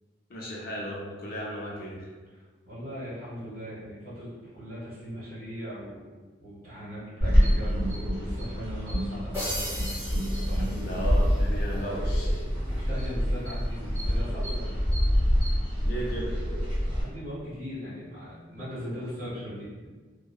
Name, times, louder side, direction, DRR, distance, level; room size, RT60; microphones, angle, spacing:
voice 1, 0.3-2.1 10.8-12.4 15.8-16.4, right 1 dB, 50° left, -3 dB, 0.5 m, -35 dB
voice 2, 2.3-6.0 6.4-9.7 10.4-11.1 12.7-14.8 16.9-19.9, equal, 50° right, -11 dB, 1.4 m, -39 dB
sound 1, 7.2-17.0, equal, 25° right, 1.4 m, -26 dB
sound 2, 9.3-11.4, equal, 10° right, 1.0 m, -37 dB
2.7 x 2.1 x 2.3 m, 1.4 s
head